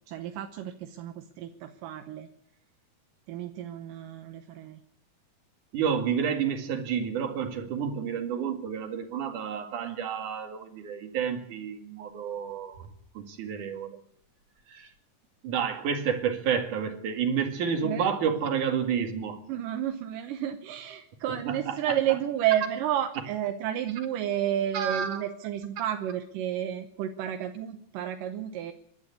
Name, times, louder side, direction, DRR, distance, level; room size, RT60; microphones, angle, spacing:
voice 1, 0.1-2.3 3.3-4.8 17.8-18.1 19.5-28.7, right 11 dB, 85° right, 7 dB, 2.6 m, -31 dB
voice 2, 5.7-12.9 13.2-14.0 14.7-14.9 15.4-19.4 21.5-21.8 24.7-25.2, right 7 dB, 65° right, 6 dB, 3.5 m, -30 dB
27.5 x 12.0 x 8.4 m, 0.70 s
omnidirectional pair, 3.9 m